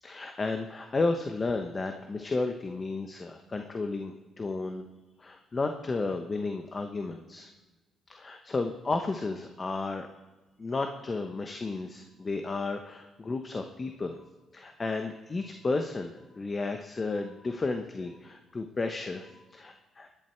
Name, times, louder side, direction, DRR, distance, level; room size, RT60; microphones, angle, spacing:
voice 1, 0.0-4.9 5.2-7.5 8.1-10.1 10.6-14.2 14.5-20.1, left 3 dB, 30° left, 5 dB, 1.0 m, -33 dB
22.5 x 11.0 x 4.5 m, 1.1 s
cardioid pair, 90°, 0 cm